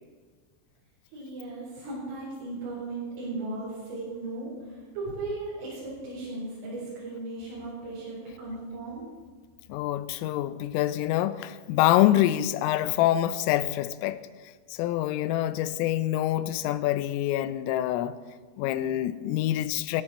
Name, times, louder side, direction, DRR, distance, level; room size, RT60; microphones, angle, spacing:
voice 1, 1.1-9.1, right 2 dB, 70° right, 6.8 m, -36 dB
voice 2, 9.7-14.2 14.7-18.2 18.6-20.0, left 13 dB, 85° left, 3.3 m, -26 dB
18.0 x 14.0 x 4.3 m
omnidirectional pair, 5.8 m